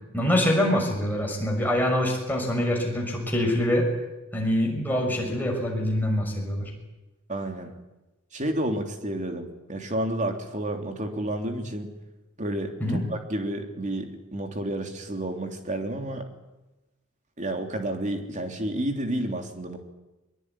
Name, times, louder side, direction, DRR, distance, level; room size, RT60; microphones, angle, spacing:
voice 1, 0.1-3.9 4.3-6.7 12.8-13.0, left 1 dB, 10° left, 0 dB, 6.5 m, -25 dB
voice 2, 7.3-7.7 8.3-11.9 12.4-16.3 17.4-19.8, right 1 dB, 35° right, 4 dB, 3.3 m, -30 dB
23.0 x 22.5 x 10.0 m, 1.0 s
head